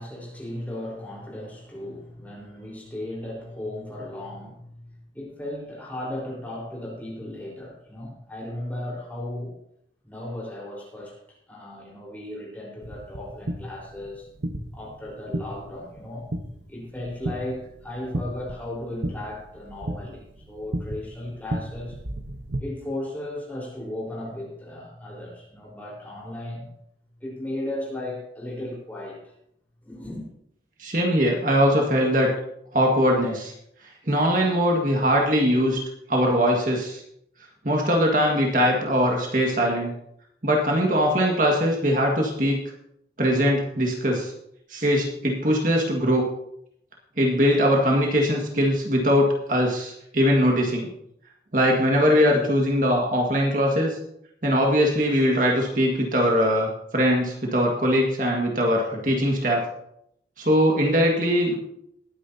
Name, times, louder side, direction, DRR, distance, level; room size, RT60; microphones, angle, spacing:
voice 1, 0.0-9.6 10.0-11.2 11.5-14.3 14.7-16.3 16.7-22.0 22.6-26.7 27.2-29.3 29.8-30.3, left 1 dB, 10° left, -3 dB, 4.4 m, -36 dB
sound 1, 12.8-22.6, right 1 dB, 80° right, 1.2 m, -34 dB
voice 2, 30.8-32.3 32.7-33.5 34.1-35.8 36.1-37.0 37.6-39.9 40.4-42.6 43.2-44.3 44.7-46.3 47.2-50.9 51.5-54.0 54.4-59.6 60.4-61.5, equal, 50° right, 0 dB, 1.8 m, -21 dB
20.0 x 9.9 x 2.8 m, 0.74 s
head